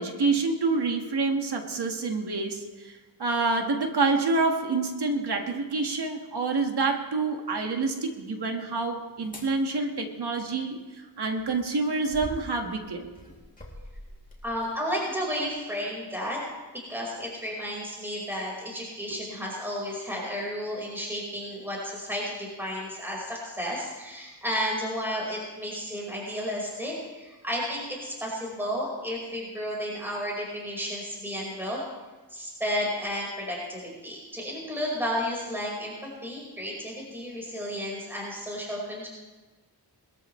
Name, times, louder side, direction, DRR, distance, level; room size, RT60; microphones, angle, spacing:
voice 1, 0.0-13.1, right 3 dB, 65° right, 3 dB, 1.9 m, -27 dB
sound 1, 9.2-9.5 11.2-14.7 15.4-15.6, equal, 20° left, 2.9 m, -45 dB
voice 2, 14.4-16.4 16.7-31.8 32.3-35.9 36.2-39.1, equal, 5° right, -3 dB, 5.0 m, -32 dB
22.0 x 13.5 x 3.3 m, 1.2 s
wide cardioid pair, 85°, 43 cm